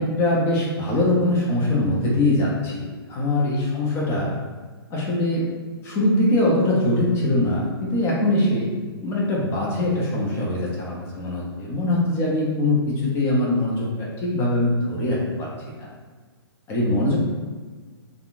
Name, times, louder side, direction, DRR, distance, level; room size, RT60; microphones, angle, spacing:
voice 1, 0.0-4.3 4.9-5.5 5.8-8.7 9.0-15.9 16.7-17.2, left 1 dB, 20° left, -4 dB, 0.6 m, -22 dB
3.5 x 2.3 x 2.4 m, 1.4 s
hypercardioid pair, 145°, 13 cm